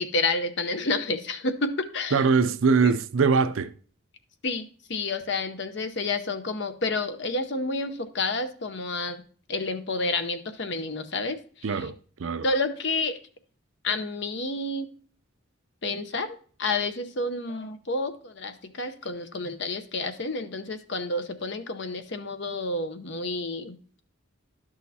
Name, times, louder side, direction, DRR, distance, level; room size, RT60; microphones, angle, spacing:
voice 1, 0.0-2.3 2.8-2.9 4.4-9.2 9.5-11.9 12.4-13.2 13.8-14.9 15.8-23.8, left 3 dB, 55° left, 0.7 m, -30 dB
voice 2, 2.1-3.7 11.6-11.9 12.2-12.5, right 5 dB, 70° right, 0.5 m, -22 dB
11.0 x 6.3 x 2.8 m
head